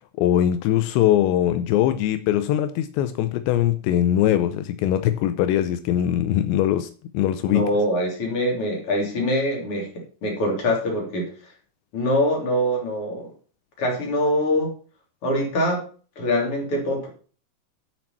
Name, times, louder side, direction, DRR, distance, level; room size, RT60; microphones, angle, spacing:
voice 1, 0.2-6.9 7.1-7.7, left 11 dB, 90° left, 10 dB, 2.6 m, -21 dB
voice 2, 7.4-9.9 10.2-11.3 11.9-13.3 13.8-14.7 15.2-15.8 16.1-17.1, equal, 30° left, -1 dB, 3.5 m, -23 dB
11.0 x 6.1 x 5.8 m, 0.40 s
omnidirectional pair, 5.9 m